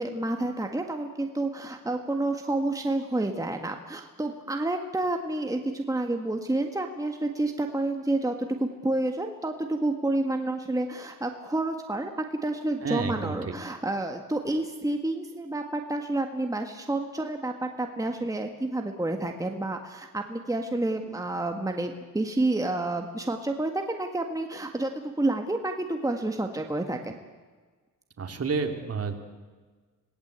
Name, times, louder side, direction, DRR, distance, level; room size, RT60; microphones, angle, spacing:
voice 1, 0.0-12.1 12.4-27.2, right 2 dB, 10° right, 4 dB, 1.8 m, -29 dB
voice 2, 12.8-13.5 28.2-29.1, right 5 dB, 45° right, 5 dB, 3.0 m, -30 dB
27.0 x 18.5 x 8.3 m, 1.4 s
cardioid pair, 110°, 33 cm